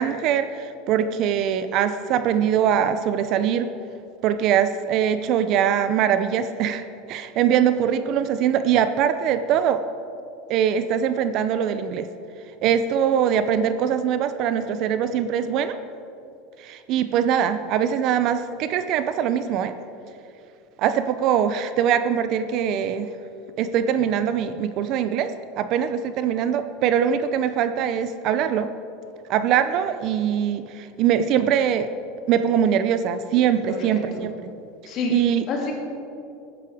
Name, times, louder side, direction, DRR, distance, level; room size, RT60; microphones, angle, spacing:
voice 1, 0.0-3.7 4.2-9.8 10.5-12.1 12.6-15.8 16.6-19.7 20.8-23.1 23.6-28.7 29.3-31.9 32.3-34.3 35.1-35.5, right 9 dB, 45° right, 11 dB, 0.6 m, -22 dB
voice 2, 33.7-34.2 34.8-35.1 35.5-35.7, left 4 dB, 40° left, -1 dB, 2.9 m, -28 dB
15.0 x 9.7 x 5.0 m, 2.6 s
supercardioid pair, 150°, 0 cm